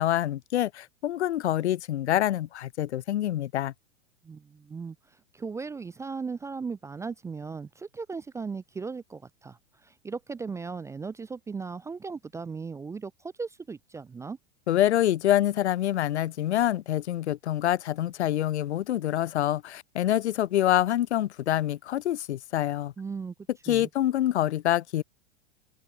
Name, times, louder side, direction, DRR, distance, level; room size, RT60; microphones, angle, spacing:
voice 1, 0.0-3.7 14.7-22.9 23.7-25.0, left 12 dB, 80° left, 0.6 m, -26 dB
voice 2, 4.2-14.4 23.0-23.3 23.7-23.9, right 5 dB, 10° right, 0.4 m, -37 dB
open air
hypercardioid pair, 100°, 33 cm